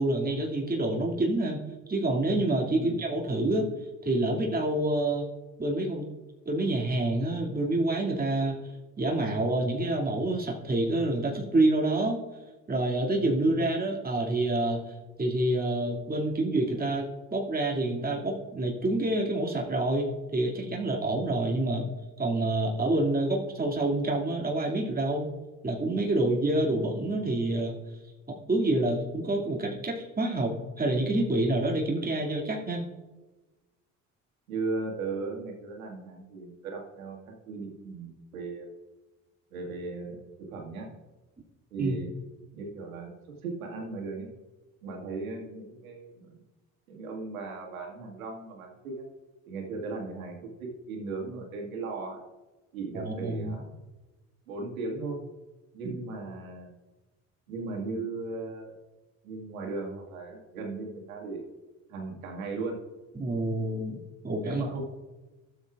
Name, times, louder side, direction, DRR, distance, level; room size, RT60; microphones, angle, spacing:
voice 1, 0.0-1.6 1.9-3.7 4.0-5.3 5.6-6.0 6.5-8.6 9.0-12.2 12.7-21.9 22.2-25.3 25.6-27.7 28.3-32.8 41.8-42.0 52.9-53.6 55.8-55.9 63.1-64.0 64.2-64.7, right 2 dB, 20° right, -2 dB, 2.3 m, -27 dB
voice 2, 2.7-3.1 34.5-38.7 39.5-40.9 41.7-42.1 42.5-44.3 44.8-46.4 46.9-49.1 49.5-52.2 52.7-53.6 54.5-55.2 55.7-56.7 57.5-58.7 59.2-61.4 61.9-62.8 64.4-64.8, right 3 dB, 85° right, 1 dB, 1.9 m, -37 dB
17.5 x 7.7 x 2.4 m, 1.2 s
hypercardioid pair, 55°, 41 cm